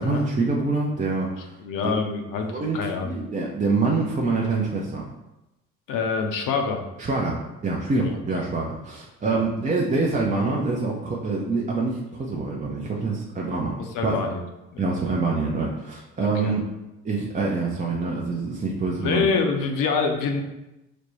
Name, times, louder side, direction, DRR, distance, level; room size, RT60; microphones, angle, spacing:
voice 1, 0.0-1.5 2.5-2.8 3.0-5.1 7.0-13.7 14.0-14.2 14.8-16.6 17.0-19.3, right 3 dB, 20° right, -3 dB, 0.5 m, -25 dB
voice 2, 1.6-3.1 5.9-6.8 8.3-8.4 9.3-9.4 13.8-14.4 14.7-14.9 16.2-16.5 19.0-20.4, left 5 dB, 50° left, 4 dB, 0.7 m, -26 dB
4.1 x 2.1 x 3.1 m, 0.95 s
hypercardioid pair, 60°, 41 cm